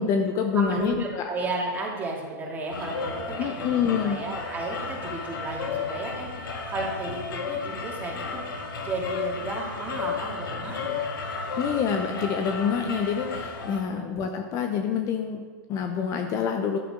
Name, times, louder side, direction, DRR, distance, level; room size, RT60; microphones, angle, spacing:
voice 1, 0.0-1.2 3.4-4.2 11.6-16.8, left 7 dB, 30° left, 5 dB, 0.8 m, -27 dB
voice 2, 0.5-8.4 8.8-11.0 13.9-14.1, right 2 dB, 15° right, -2 dB, 2.7 m, -33 dB
sound 1, 2.7-13.8, left 4 dB, 90° left, 2.0 m, -33 dB
13.5 x 11.0 x 3.8 m, 1.5 s
hypercardioid pair, 145°, 11 cm